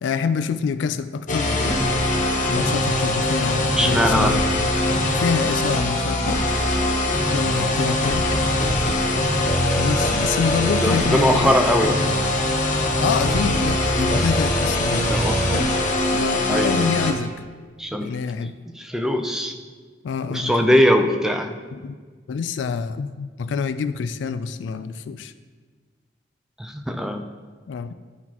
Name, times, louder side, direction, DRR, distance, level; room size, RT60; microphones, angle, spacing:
voice 1, 0.0-1.5 2.5-4.6 5.1-6.4 7.3-8.3 9.8-11.5 13.0-15.1 15.5-15.7 16.1-17.3 18.0-18.5 20.0-20.7 21.7-22.0 22.3-25.3 27.7-27.9, left 6 dB, 85° left, 12 dB, 0.3 m, -26 dB
sound 1, 1.3-17.1, left 1 dB, 45° left, 0.8 m, -22 dB
voice 2, 3.7-4.3 6.2-6.5 10.8-11.9 15.1-15.6 16.5-16.9 17.8-18.2 18.8-19.6 20.3-21.5 26.6-27.2, equal, 5° right, 4 dB, 0.4 m, -21 dB
11.0 x 4.0 x 2.9 m, 1.5 s
head